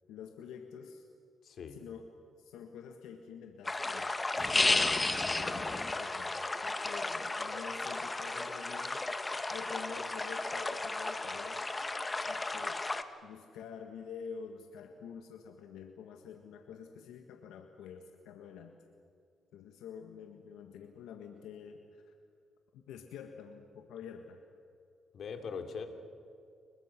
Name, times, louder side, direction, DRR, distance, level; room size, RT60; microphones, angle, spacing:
voice 1, 0.1-1.1 1.7-2.1 2.4-9.1 9.5-11.7 12.2-12.8 13.2-18.7 19.5-22.1 22.7-24.4, left 7 dB, 90° left, 5 dB, 1.6 m, -48 dB
voice 2, 1.4-1.8 25.1-25.9, left 5 dB, 60° left, 5 dB, 2.9 m, -41 dB
sound 1, 3.6-13.0, left 2 dB, 20° left, 1.3 m, -33 dB
29.0 x 23.5 x 6.0 m, 2.5 s
cardioid pair, 90°, 0 cm